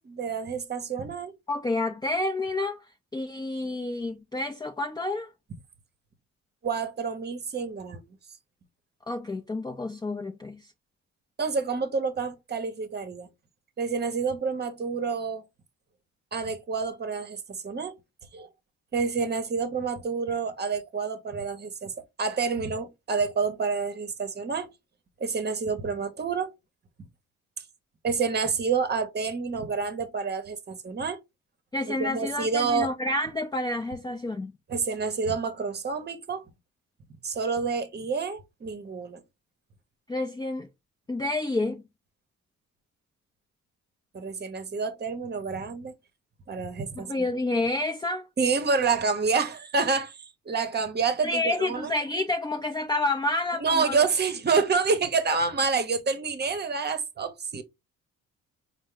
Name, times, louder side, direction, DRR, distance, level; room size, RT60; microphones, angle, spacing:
voice 1, 0.0-1.3 6.6-8.0 11.4-13.3 13.8-15.4 16.3-17.9 18.3-18.5 18.9-21.9 22.2-24.7 25.2-26.5 28.0-31.2 32.0-32.9 34.7-36.4 37.2-39.2 44.1-45.9 46.5-47.3 48.4-51.9 53.6-57.6, right 5 dB, 35° right, 0.9 m, -28 dB
voice 2, 1.5-2.8 3.1-5.3 9.1-10.7 31.7-34.5 40.1-40.7 41.1-41.8 47.0-48.3 51.2-54.0, left 2 dB, 15° left, 0.6 m, -29 dB
4.4 x 2.1 x 3.6 m
cardioid pair, 90°, 30 cm